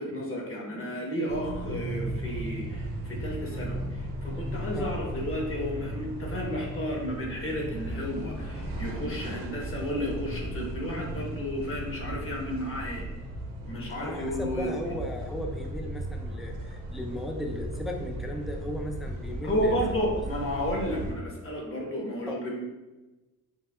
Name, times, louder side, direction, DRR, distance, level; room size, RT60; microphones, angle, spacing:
voice 1, 0.0-13.1 13.7-14.8 19.4-22.6, equal, 40° left, -1 dB, 1.2 m, -32 dB
sound 1, 1.3-21.1, right 1 dB, 85° right, 1.0 m, -36 dB
voice 2, 14.0-19.8 22.3-22.4, left 1 dB, ahead, 2 dB, 0.4 m, -36 dB
6.6 x 2.7 x 2.4 m, 1.1 s
wide cardioid pair, 130°, 33 cm